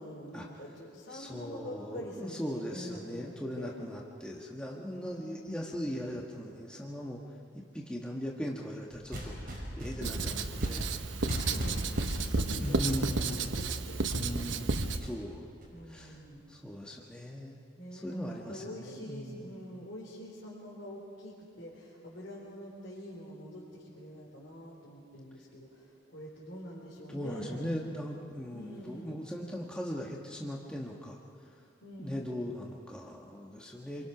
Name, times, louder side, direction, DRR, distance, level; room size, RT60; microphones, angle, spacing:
voice 1, 0.0-3.7 4.9-6.0 10.3-10.8 11.2-11.8 12.0-14.7 15.7-16.5 17.8-27.7 28.5-29.2 31.8-32.3 33.9-34.1, equal, 70° left, -6 dB, 4.0 m, -46 dB
voice 2, 1.1-7.2 7.5-10.9 12.6-13.5 14.1-15.5 15.9-16.2 16.5-17.6 17.9-19.6 27.1-31.2 32.0-34.1, equal, 5° left, -2 dB, 1.3 m, -39 dB
sound 1, 8.9-16.3, equal, 45° right, 5.6 m, -41 dB
Writing, 10.0-15.0, right 3 dB, 85° right, 1.0 m, -32 dB
27.5 x 22.5 x 6.0 m, 2.5 s
head